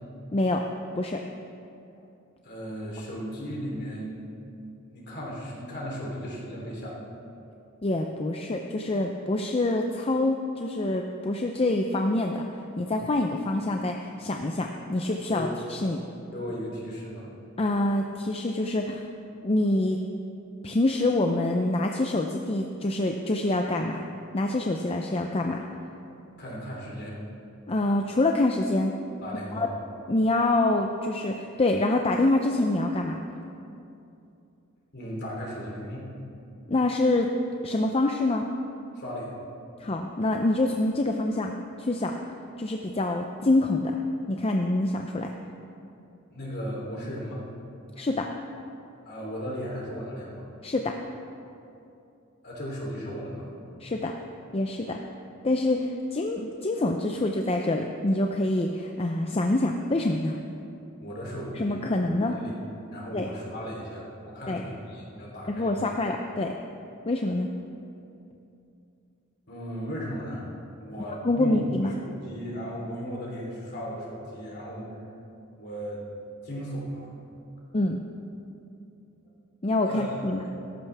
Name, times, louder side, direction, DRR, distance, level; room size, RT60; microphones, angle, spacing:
voice 1, 0.3-0.6 1.0-1.2 7.8-12.4 12.8-16.0 17.6-19.1 19.4-20.0 20.6-24.1 24.3-25.7 27.7-28.9 29.5-29.7 30.1-33.2 36.7-37.3 37.6-38.5 39.8-42.1 42.6-44.0 44.3-45.3 48.0-48.3 50.6-51.0 53.8-54.1 54.5-55.0 55.4-60.4 61.5-62.4 63.1-63.3 64.5-64.6 65.5-66.5 67.1-67.5 71.2-71.9 77.7-78.0 79.6-80.5, left 2 dB, 30° left, 3 dB, 0.6 m, -26 dB
voice 2, 2.4-4.2 4.9-7.0 15.3-15.6 16.3-17.3 26.4-27.2 29.2-29.7 34.9-36.1 39.0-39.3 46.3-47.4 49.0-50.4 52.4-53.5 61.0-61.8 62.2-62.6 62.9-65.8 69.5-70.5 70.8-75.0 75.6-76.1 76.4-77.1 79.9-80.1 80.3-80.5, equal, 50° left, -3 dB, 3.4 m, -36 dB
17.5 x 14.0 x 3.5 m, 2.7 s
head